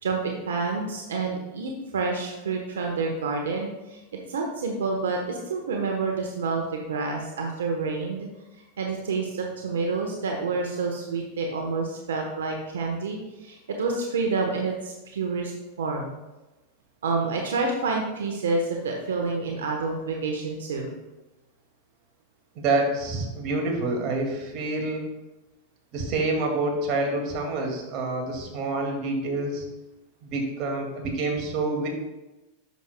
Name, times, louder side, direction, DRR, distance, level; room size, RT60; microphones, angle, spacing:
voice 1, 0.0-4.0 4.3-8.3 8.8-15.5 15.8-16.1 17.0-20.9, right 4 dB, 90° right, 1 dB, 1.0 m, -28 dB
voice 2, 22.6-25.0 25.9-29.7 30.2-31.9, right 2 dB, 50° right, 1 dB, 2.1 m, -27 dB
10.5 x 6.3 x 2.2 m, 1.0 s
hypercardioid pair, 115°, 0 cm